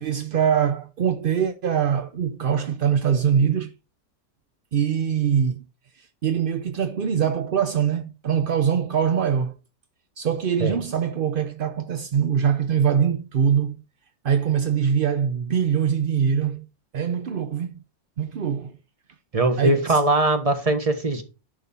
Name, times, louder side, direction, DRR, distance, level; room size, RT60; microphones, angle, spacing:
voice 1, 0.0-3.7 4.7-5.6 6.2-9.5 10.2-13.8 14.2-16.7 16.9-17.8 18.2-18.8 19.6-20.0, right 8 dB, 55° right, 0.6 m, -23 dB
voice 2, 19.3-21.2, right 2 dB, 25° right, 1.4 m, -21 dB
11.0 x 6.0 x 4.3 m
omnidirectional pair, 1.6 m